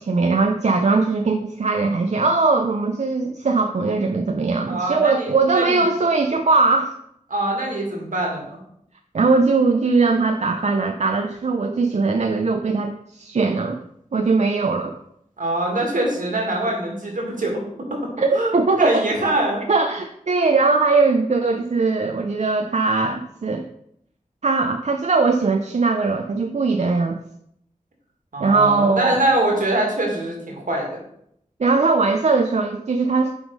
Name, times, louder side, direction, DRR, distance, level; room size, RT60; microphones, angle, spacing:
voice 1, 0.0-7.0 9.1-13.8 14.1-14.9 18.2-19.0 19.7-23.7 24.4-27.2 28.4-29.2 31.6-33.3, right 3 dB, 55° right, 5 dB, 0.5 m, -20 dB
voice 2, 4.7-5.8 7.3-8.6 15.4-19.6 28.3-31.0, right 1 dB, 75° right, -1 dB, 2.0 m, -24 dB
6.0 x 3.6 x 5.2 m, 0.72 s
wide cardioid pair, 55°, 14 cm